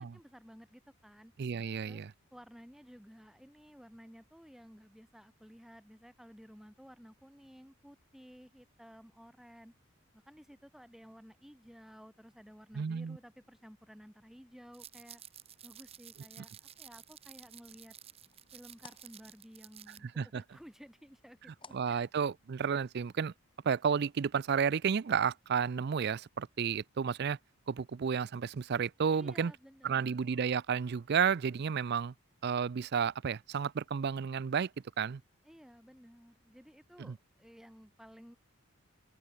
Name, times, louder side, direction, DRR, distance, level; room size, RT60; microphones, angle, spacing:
voice 1, 0.0-1.3 1.8-2.0 2.3-9.7 10.1-15.2 15.6-17.9 18.5-20.1 20.3-22.1 29.1-30.2 35.4-38.4, equal, ahead, 4.1 m, -55 dB
voice 2, 1.4-2.1 12.7-13.2 20.0-20.4 21.7-23.3 23.6-27.4 27.7-29.5 29.8-32.1 32.4-34.7 35.0-35.2 37.0-37.1, right 6 dB, 50° right, 0.4 m, -32 dB
sound 1, 14.7-20.0, right 10 dB, 30° right, 1.0 m, -53 dB
sound 2, 17.4-22.8, left 5 dB, 25° left, 7.2 m, -62 dB
open air
head